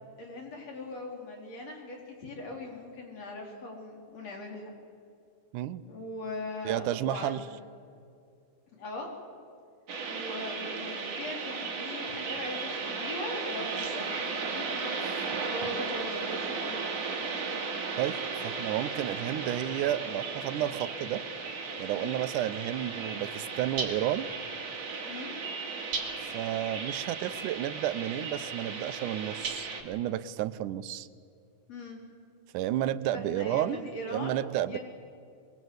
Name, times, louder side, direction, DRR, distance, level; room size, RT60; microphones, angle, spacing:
voice 1, 0.2-4.7 5.9-7.5 8.7-9.1 10.1-14.1 14.4-17.3 21.9-22.2 25.0-25.4 31.7-32.0 33.1-34.8, left 2 dB, 55° left, 0 dB, 5.0 m, -40 dB
voice 2, 6.7-7.4 18.0-21.2 21.8-24.3 26.2-31.1 32.5-34.8, right 12 dB, 85° right, 14 dB, 2.2 m, -32 dB
sound 1, 9.9-29.8, right 4 dB, 55° right, 3.4 m, -35 dB
25.0 x 22.5 x 8.0 m, 2.4 s
omnidirectional pair, 3.5 m